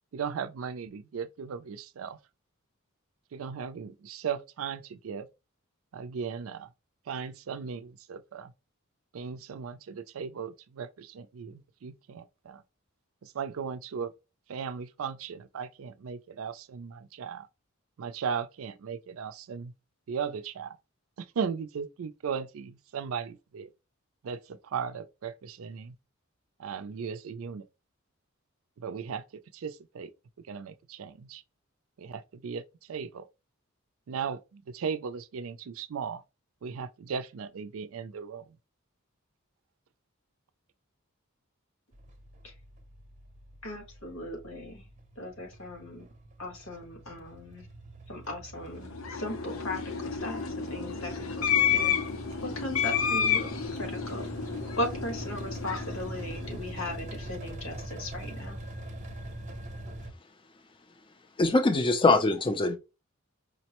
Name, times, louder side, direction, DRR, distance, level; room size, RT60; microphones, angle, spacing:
voice 1, 0.1-2.2 3.3-5.3 5.9-6.7 7.1-8.5 9.1-12.6 13.2-14.1 14.5-17.5 18.0-19.7 20.1-20.8 21.2-23.7 24.2-25.9 26.6-27.7 28.8-29.2 29.5-30.1 30.5-31.4 32.0-32.6 32.9-33.3 34.1-36.2 36.6-38.5, right 6 dB, 80° right, 0.4 m, -37 dB
sound 1, 41.9-60.1, right 1 dB, 35° right, 0.7 m, -42 dB
voice 2, 43.6-44.8 45.2-46.0 46.4-47.6 48.1-50.4 50.7-51.3 51.5-52.0 52.4-53.5 53.8-54.3 54.8-58.6, left 1 dB, 85° left, 1.5 m, -37 dB
sound 2, 48.7-57.2, left 8 dB, 70° left, 0.6 m, -31 dB
voice 3, 61.4-62.8, left 2 dB, 25° left, 0.4 m, -23 dB
5.0 x 2.0 x 2.9 m
head